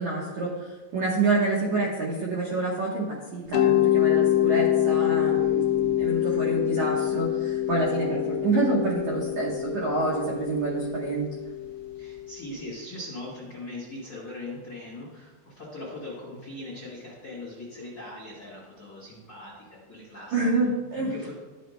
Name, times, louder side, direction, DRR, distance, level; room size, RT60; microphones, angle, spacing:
voice 1, 0.0-11.3 20.3-21.1, right 3 dB, 80° right, -4 dB, 1.6 m, -27 dB
Mallet percussion, 3.5-12.3, left 13 dB, 85° left, 2.5 m, -25 dB
voice 2, 12.0-20.7 21.1-21.3, left 2 dB, 45° left, -7 dB, 1.5 m, -40 dB
13.0 x 7.6 x 2.2 m, 1.3 s
omnidirectional pair, 5.2 m